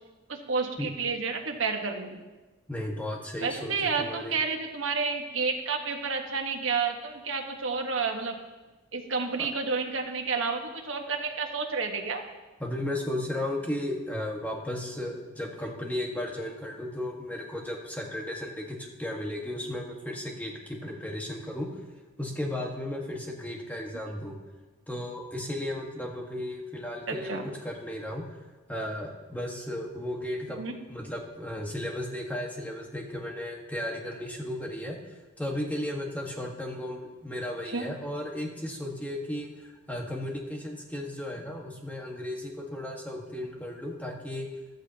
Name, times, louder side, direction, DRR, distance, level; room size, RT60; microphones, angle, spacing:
voice 1, 0.3-2.2 3.4-8.3 8.9-12.2 27.1-27.4 30.5-30.7 37.7-37.9, right 4 dB, 75° right, 3 dB, 1.5 m, -30 dB
voice 2, 2.7-4.4 9.4-9.5 12.6-21.7 22.2-24.4 24.9-28.2 28.7-30.6 30.9-35.0 35.4-44.5, left 1 dB, 10° left, 0 dB, 1.7 m, -35 dB
14.0 x 13.5 x 3.0 m, 1.2 s
head